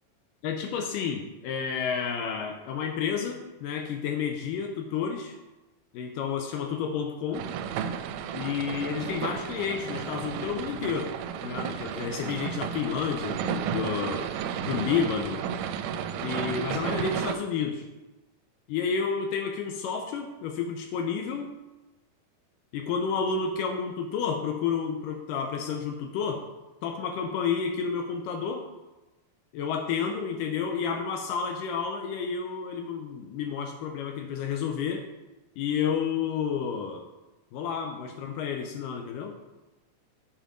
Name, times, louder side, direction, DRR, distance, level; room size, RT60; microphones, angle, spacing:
voice 1, 0.4-5.4 5.9-7.4 8.3-11.1 11.4-14.3 14.6-15.5 16.2-17.9 18.7-21.5 22.7-26.4 26.8-28.7 29.5-35.1 35.6-37.0 37.5-39.4, left 6 dB, 80° left, 4 dB, 2.2 m, -30 dB
sound 1, 7.3-17.3, right 8 dB, 80° right, 2.0 m, -33 dB
8.8 x 5.2 x 5.0 m, 1.1 s
omnidirectional pair, 4.1 m